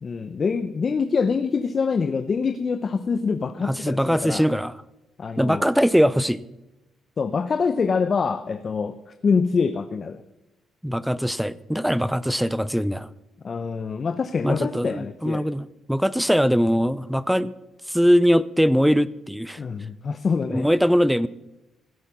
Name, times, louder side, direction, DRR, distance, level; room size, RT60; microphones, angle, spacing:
voice 1, 0.0-4.4 5.2-5.7 7.2-9.0 9.2-10.2 13.4-15.5 19.6-20.7, left 5 dB, 40° left, 11 dB, 0.6 m, -25 dB
voice 2, 3.6-4.7 5.4-6.4 10.8-13.1 14.4-17.5 17.9-19.6 20.5-21.3, equal, ahead, 19 dB, 0.5 m, -21 dB
16.5 x 8.1 x 6.0 m, 0.99 s
cardioid pair, 90°, 0 cm